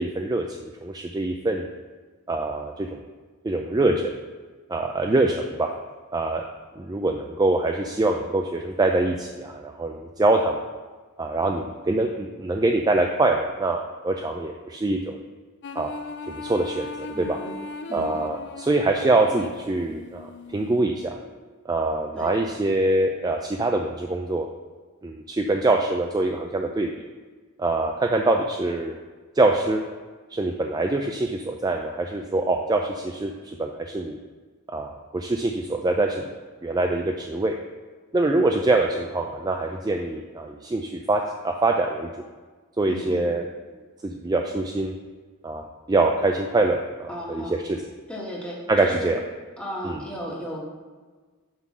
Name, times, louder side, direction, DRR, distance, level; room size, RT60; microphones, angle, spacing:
voice 1, 0.0-1.7 2.3-3.0 3.4-4.1 4.7-5.7 6.1-6.4 6.8-10.6 11.2-15.2 15.8-15.9 16.3-17.4 17.9-21.2 21.7-24.5 25.0-26.9 27.6-28.9 29.4-29.8 30.3-34.2 34.7-36.3 36.6-37.6 38.1-42.1 42.8-43.4 44.0-44.9 45.4-47.8 48.7-49.2 49.8-50.0, right 2 dB, 20° right, 3 dB, 0.4 m, -24 dB
sound 1, 15.6-20.8, left 3 dB, 50° left, 0.4 m, -38 dB
voice 2, 17.1-17.6 17.9-18.0 22.1-22.3 42.9-43.3 47.1-47.5 48.1-49.1 49.6-50.6, equal, 5° left, -5 dB, 1.8 m, -34 dB
9.5 x 3.8 x 6.1 m, 1.4 s
head